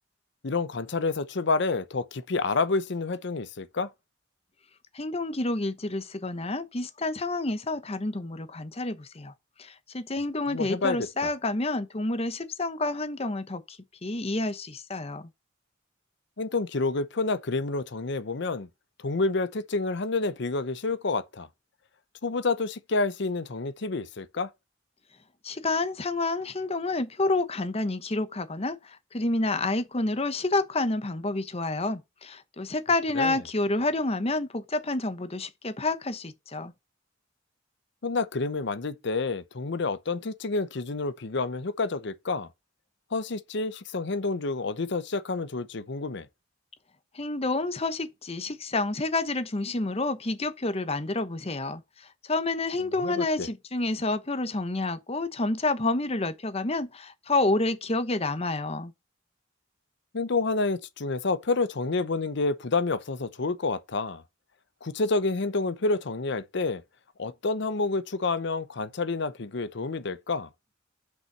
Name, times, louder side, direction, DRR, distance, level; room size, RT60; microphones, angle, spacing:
voice 1, 0.4-3.9 10.5-11.3 16.4-18.7 19.0-21.5 22.2-24.5 33.1-33.4 38.0-42.5 43.1-46.3 53.0-53.5 60.1-64.2 64.8-66.8 67.2-70.5, left 3 dB, 60° left, 0.7 m, -29 dB
voice 2, 4.9-9.3 9.6-13.8 14.0-15.3 25.4-36.7 47.1-58.9, left 2 dB, 30° left, 1.0 m, -29 dB
6.1 x 5.5 x 6.6 m
head